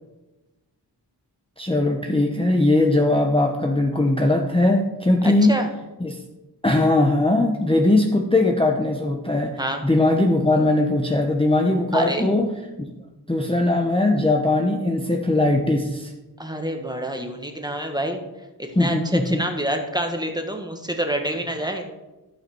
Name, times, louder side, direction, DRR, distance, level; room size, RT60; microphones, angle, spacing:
voice 1, 1.6-5.6 6.0-6.2 6.6-12.5 12.8-12.9 13.3-16.1 18.8-19.4 21.6-21.7, left 2 dB, 15° left, 2 dB, 0.9 m, -20 dB
voice 2, 5.2-5.7 9.6-9.8 11.9-12.3 16.4-18.2 18.6-21.8, right 1 dB, 10° right, 3 dB, 1.4 m, -27 dB
13.5 x 5.7 x 4.5 m, 1.1 s
wide cardioid pair, 45°, 42 cm